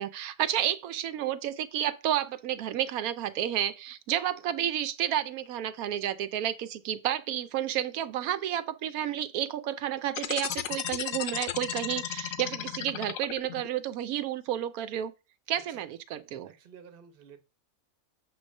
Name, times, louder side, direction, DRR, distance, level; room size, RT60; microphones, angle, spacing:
voice 1, 0.0-15.1 15.5-16.5, right 11 dB, 85° right, 1.0 m, -31 dB
sound 1, 10.1-13.7, left 10 dB, 70° left, 1.1 m, -34 dB
voice 2, 16.5-17.4, right 7 dB, 45° right, 1.0 m, -52 dB
7.6 x 3.2 x 6.3 m
omnidirectional pair, 1.5 m